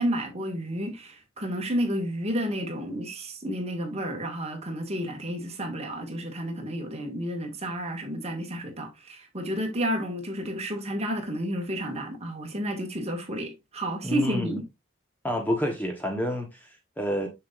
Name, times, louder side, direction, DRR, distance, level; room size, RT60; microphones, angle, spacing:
voice 1, 0.0-14.6, equal, 30° right, 1.8 m, -31 dB
voice 2, 14.0-14.6 15.2-17.3, equal, 10° left, 1.0 m, -29 dB
6.7 x 6.7 x 2.4 m
head